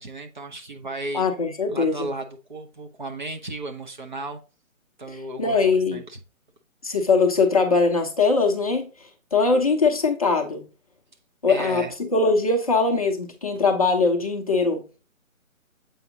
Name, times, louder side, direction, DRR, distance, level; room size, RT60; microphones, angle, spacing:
voice 1, 0.0-1.3 1.7-4.4 5.0-5.6 5.9-6.2 11.5-11.9, right 2 dB, 35° right, 0.7 m, -34 dB
voice 2, 1.1-2.1 5.1-6.0 6.8-10.6 11.4-14.8, left 4 dB, 25° left, 0.6 m, -21 dB
7.7 x 4.8 x 2.8 m
figure-of-eight pair, 155°, 41 cm